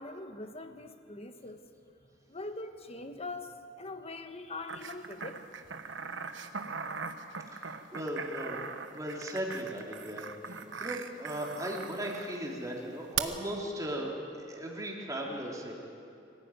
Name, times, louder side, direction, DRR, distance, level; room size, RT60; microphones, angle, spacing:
voice 1, 0.0-1.6 2.3-5.4, left 2 dB, 35° left, 7 dB, 1.3 m, -42 dB
sound 1, 4.7-12.4 13.2-13.3, right 6 dB, 80° right, 1.2 m, -40 dB
voice 2, 7.5-8.6 8.9-15.7, right 1 dB, 20° right, -2 dB, 3.4 m, -37 dB
23.5 x 15.0 x 9.2 m, 2.5 s
head